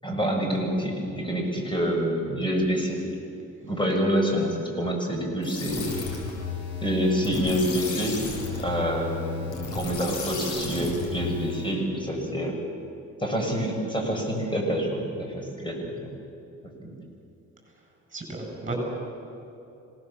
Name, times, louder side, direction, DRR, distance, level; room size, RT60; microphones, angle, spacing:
voice 1, 0.0-3.0 3.6-6.2 6.8-8.2 8.6-12.6 13.2-16.1 16.6-17.0, equal, 15° left, 1 dB, 6.5 m, -27 dB
sound 1, 5.4-11.8, left 5 dB, 90° left, 6.3 m, -34 dB
voice 2, 18.1-18.7, right 3 dB, 25° right, 1 dB, 8.0 m, -34 dB
27.0 x 19.0 x 7.3 m, 2.7 s
cardioid pair, 90°, 30 cm